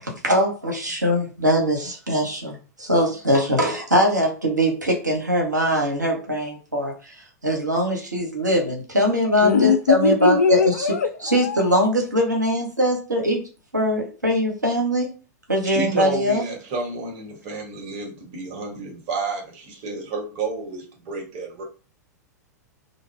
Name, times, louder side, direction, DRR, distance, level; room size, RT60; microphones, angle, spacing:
voice 1, 0.0-7.1 7.4-10.9 11.2-13.4 13.7-15.1 15.5-16.4, equal, 85° right, 0.9 m, -22 dB
voice 2, 9.4-11.9, left 5 dB, 65° left, 0.4 m, -21 dB
voice 3, 15.6-21.6, right 3 dB, 40° right, 1.2 m, -31 dB
2.5 x 2.2 x 3.3 m
figure-of-eight pair, 100°, 9 cm